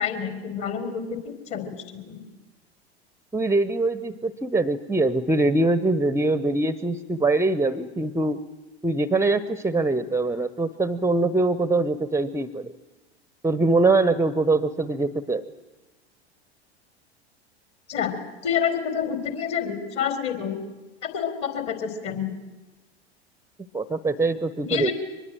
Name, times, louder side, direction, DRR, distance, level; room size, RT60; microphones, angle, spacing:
voice 1, 0.0-2.2 17.9-20.6 21.0-22.3 24.6-24.9, left 8 dB, 40° left, 8 dB, 4.3 m, -28 dB
voice 2, 3.3-8.4 8.8-12.7 13.4-15.4 23.7-24.9, right 2 dB, 10° right, 15 dB, 0.9 m, -23 dB
24.0 x 21.0 x 9.1 m, 1.1 s
figure-of-eight pair, 85°, 32 cm